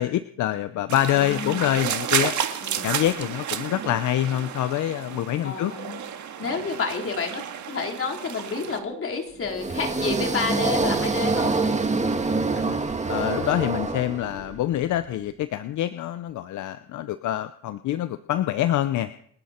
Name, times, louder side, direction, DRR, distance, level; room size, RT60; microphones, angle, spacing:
voice 1, 0.0-2.3 2.8-5.7 12.5-12.8 13.1-19.1, left 12 dB, 75° left, 12 dB, 0.8 m, -26 dB
sound 1, 0.9-8.8, right 9 dB, 70° right, 2.1 m, -31 dB
voice 2, 1.1-1.8 2.6-3.0 5.4-6.0 6.4-11.6, left 4 dB, 45° left, 2 dB, 3.9 m, -30 dB
sound 2, 9.4-14.6, right 3 dB, 25° right, 2.0 m, -25 dB
29.0 x 10.5 x 4.4 m, 0.67 s
cardioid pair, 90°, 30 cm